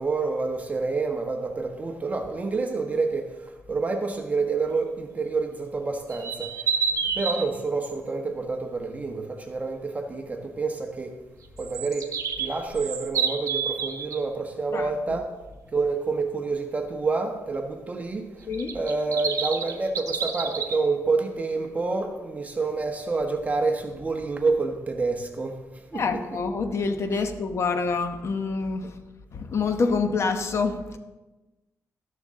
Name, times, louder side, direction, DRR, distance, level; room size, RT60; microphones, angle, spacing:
voice 1, 0.0-6.9 7.1-11.2 11.6-15.3 15.7-18.5 18.7-26.2, right 3 dB, 25° right, 1.2 m, -28 dB
sound 1, 6.1-7.4 11.6-14.2 18.5-20.8, right 6 dB, 65° right, 1.2 m, -28 dB
voice 2, 14.7-15.2 18.5-18.8 25.9-29.0 29.3-31.0, left 4 dB, 50° left, 1.0 m, -27 dB
13.0 x 11.0 x 3.7 m
wide cardioid pair, 125°, 6 cm